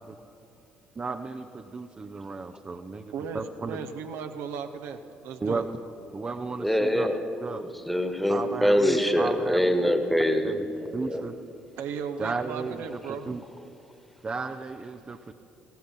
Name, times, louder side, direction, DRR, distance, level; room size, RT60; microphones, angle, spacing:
voice 1, 1.0-3.8 5.4-5.7 6.1-7.1 7.4-7.6 8.3-9.8 10.4-10.7 10.9-11.4 12.2-13.4 14.2-15.3, right 4 dB, 25° right, 6 dB, 0.6 m, -34 dB
voice 2, 3.1-5.6 11.8-13.3, right 6 dB, 60° right, 7 dB, 0.7 m, -36 dB
voice 3, 6.6-7.2 7.5-11.2, equal, ahead, 7 dB, 1.4 m, -24 dB
15.5 x 11.5 x 5.6 m, 2.8 s
figure-of-eight pair, 50°, 5 cm